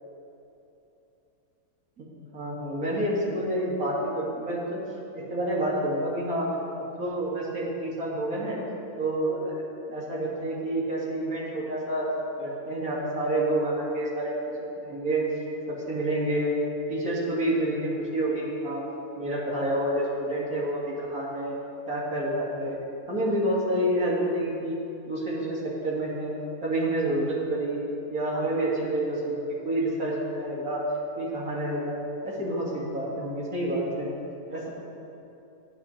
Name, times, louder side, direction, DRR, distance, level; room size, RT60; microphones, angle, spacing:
voice 1, 2.0-4.8 5.1-6.5 6.8-8.6 9.0-12.1 12.4-14.3 14.6-15.2 15.7-16.5 16.9-18.8 19.2-21.5 21.9-22.8 23.1-24.7 25.1-26.3 26.6-30.8 31.2-32.0 32.2-34.1 34.5-34.7, right 1 dB, 65° right, -5 dB, 2.8 m, -28 dB
17.5 x 10.0 x 3.3 m, 2.9 s
omnidirectional pair, 1.7 m